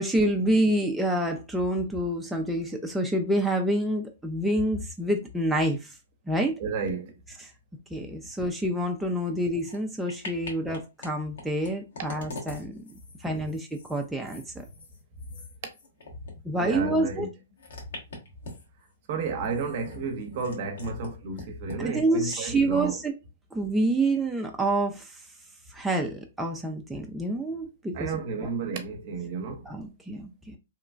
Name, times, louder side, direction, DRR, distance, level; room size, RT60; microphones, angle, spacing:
voice 1, 0.0-5.9 6.3-6.6 7.9-12.8 13.2-14.4 16.4-17.3 21.8-23.1 23.5-25.2 25.7-28.1 29.7-30.3, right 1 dB, 5° right, 0.3 m, -27 dB
voice 2, 6.6-7.2 15.2-15.4 16.2-16.3 16.6-17.3 19.1-23.0 27.9-29.7, right 4 dB, 50° right, 0.7 m, -32 dB
sound 1, 9.6-9.8 10.1-11.1 11.4-16.3 16.6-16.7 17.6-18.9 19.4-21.1 21.3-21.8 22.3-22.4, left 2 dB, 70° left, 1.2 m, -43 dB
2.9 x 2.2 x 2.4 m
hypercardioid pair, 135°, 0 cm